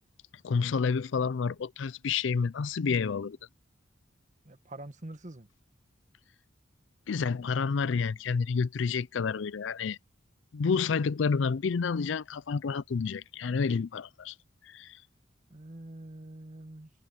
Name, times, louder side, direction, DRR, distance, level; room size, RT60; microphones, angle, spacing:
voice 1, 0.4-3.4 7.1-10.0 10.5-14.3 14.6-15.0, left 5 dB, 70° left, 0.4 m, -29 dB
voice 2, 4.4-5.5 15.5-16.9, right 1 dB, 40° right, 1.5 m, -45 dB
head